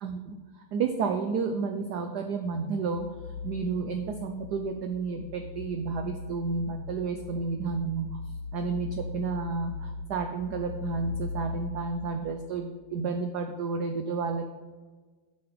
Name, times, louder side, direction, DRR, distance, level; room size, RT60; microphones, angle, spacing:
voice 1, 0.0-0.4 0.7-3.1 3.4-8.2 8.5-14.5, right 4 dB, 70° right, 5 dB, 1.0 m, -31 dB
sound 1, 3.0-12.6, left 4 dB, 80° left, 1.4 m, -39 dB
7.8 x 6.9 x 5.0 m, 1.3 s
omnidirectional pair, 2.4 m